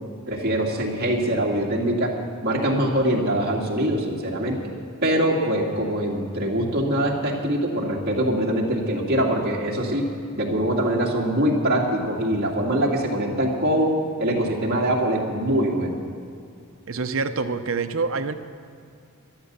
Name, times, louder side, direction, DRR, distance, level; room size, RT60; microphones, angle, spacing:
voice 1, 0.3-2.1 2.4-4.7 5.0-13.9 14.2-16.0, right 1 dB, 45° right, -2 dB, 2.3 m, -23 dB
voice 2, 16.9-18.3, right 4 dB, 65° right, 9 dB, 0.7 m, -26 dB
13.5 x 11.5 x 6.8 m, 2.4 s
head